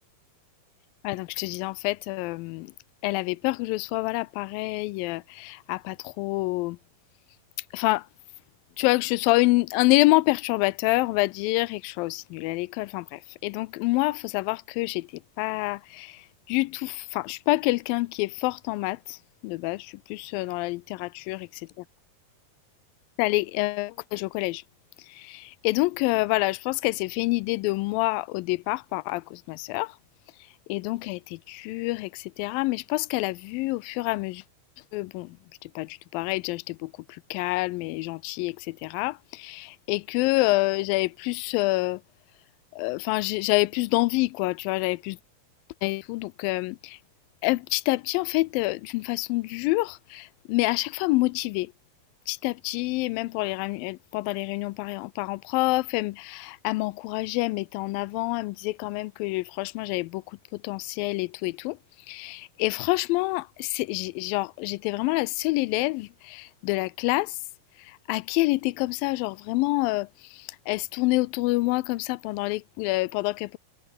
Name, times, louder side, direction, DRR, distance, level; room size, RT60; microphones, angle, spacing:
voice 1, 1.0-2.7 3.0-6.8 7.7-8.1 8.8-15.1 15.4-21.4 23.2-24.6 25.1-30.0 30.7-34.4 34.9-35.4 35.6-42.0 42.7-45.2 45.8-47.0 47.4-51.7 52.3-61.8 62.1-67.4 67.8-73.6, left 21 dB, 85° left, 2.3 m, -27 dB
omnidirectional pair, 4.1 m